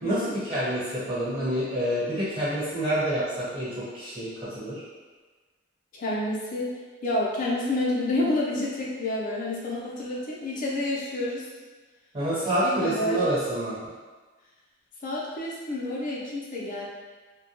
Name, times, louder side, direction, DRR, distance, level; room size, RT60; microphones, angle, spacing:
voice 1, 0.0-4.8 12.1-13.8, right 1 dB, 30° right, -11 dB, 1.2 m, -27 dB
voice 2, 5.9-6.7 7.0-11.4 12.6-13.2 15.0-16.8, left 1 dB, 45° left, -4 dB, 0.5 m, -29 dB
2.2 x 2.1 x 2.9 m, 1.3 s
head